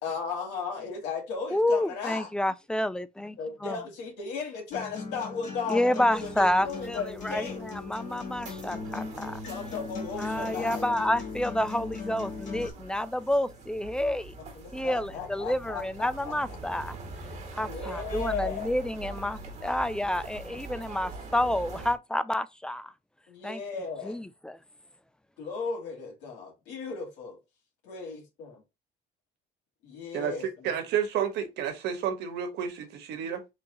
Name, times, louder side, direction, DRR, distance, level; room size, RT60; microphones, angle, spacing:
voice 1, 0.0-2.3 3.4-7.6 9.3-10.9 12.7-12.9 14.6-16.3 17.6-18.7 23.3-24.2 25.4-27.4 27.8-28.5 29.8-30.7, left 5 dB, 90° left, 1.9 m, -36 dB
voice 2, 1.5-3.4 3.6-3.8 5.7-9.4 10.2-14.3 14.7-17.0 17.5-22.9 23.4-23.6 24.0-24.6, left 1 dB, 5° left, 0.3 m, -29 dB
Acoustic guitar, 4.7-12.7, left 4 dB, 45° left, 2.1 m, -39 dB
sound 1, 6.1-21.9, right 3 dB, 45° right, 1.7 m, -43 dB
voice 3, 30.1-33.4, right 8 dB, 85° right, 1.2 m, -31 dB
3.9 x 2.8 x 3.8 m
cardioid pair, 110°, 17 cm